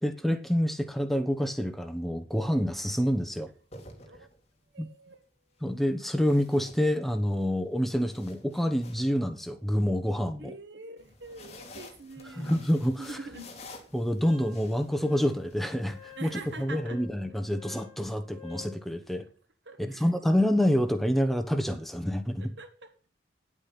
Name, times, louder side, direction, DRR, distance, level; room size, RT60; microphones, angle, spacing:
voice 1, 0.0-3.5 4.8-4.9 5.6-10.5 12.4-13.2 13.9-16.3 16.6-19.3 19.8-22.5, equal, ahead, 1.0 m, -27 dB
sound 1, 2.3-2.6 3.5-4.6 6.1-7.3 7.7-9.8 11.0-16.6, left 2 dB, 35° left, 2.7 m, -51 dB
voice 2, 4.7-5.2 10.4-12.7 13.0-13.6 16.2-17.0 19.7-20.1 22.4-23.2, right 2 dB, 60° right, 1.8 m, -44 dB
Wind instrument woodwind instrument, 14.2-18.8, left 9 dB, 35° right, 3.7 m, -51 dB
10.5 x 8.5 x 5.9 m
head